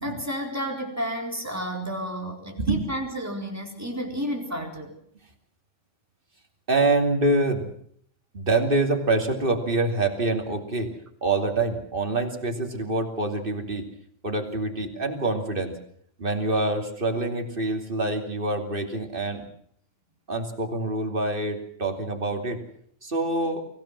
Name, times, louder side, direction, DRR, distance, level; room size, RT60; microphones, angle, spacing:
voice 1, 0.0-4.9, equal, 15° right, 1 dB, 4.2 m, -31 dB
voice 2, 6.7-7.7 8.3-10.9 11.2-13.8 14.2-15.7 16.2-19.5 20.3-22.6 23.0-23.6, right 2 dB, 50° right, 4 dB, 3.1 m, -26 dB
24.5 x 16.5 x 7.5 m, 0.64 s
omnidirectional pair, 1.2 m